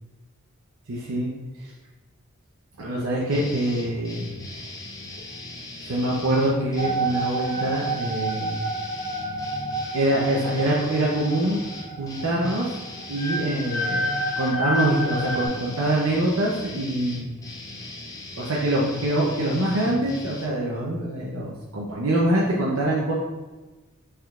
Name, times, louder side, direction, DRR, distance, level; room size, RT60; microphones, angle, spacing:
voice 1, 0.9-1.3 1.6-1.7 2.8-4.2 5.8-8.6 9.9-11.6 12.0-12.8 13.1-17.4 18.4-23.1, right 1 dB, 80° right, -4 dB, 0.7 m, -24 dB
sound 1, 3.3-20.5, left 2 dB, 15° left, 0.4 m, -39 dB
sound 2, 6.8-15.5, right 2 dB, 40° left, 1.2 m, -30 dB
5.5 x 3.7 x 2.4 m, 1.2 s
head